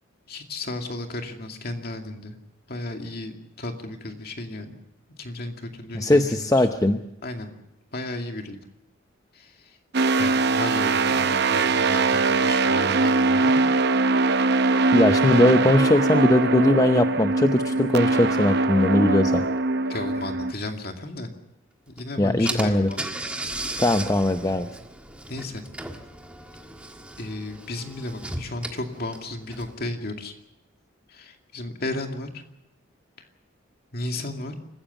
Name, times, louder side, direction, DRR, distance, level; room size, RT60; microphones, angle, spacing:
voice 1, 0.3-2.4 2.7-3.3 3.6-4.8 5.2-6.6 7.2-7.5 7.9-8.6 9.3-9.8 10.2-13.6 14.2-14.6 19.9-21.3 21.9-23.0 23.5-23.8 25.3-25.6 27.2-30.3 31.1-32.4 33.9-34.5, left 2 dB, 50° left, 4 dB, 2.4 m, -34 dB
voice 2, 5.9-7.0 14.9-19.5 22.2-22.9 23.8-24.7, left 1 dB, 15° left, 7 dB, 0.7 m, -20 dB
sound 1, 9.9-20.5, right 3 dB, 55° right, 0.7 m, -22 dB
Car / Engine, 22.0-22.1 22.4-29.9, right 2 dB, 5° right, 1.6 m, -36 dB
27.0 x 15.5 x 7.0 m, 0.88 s
head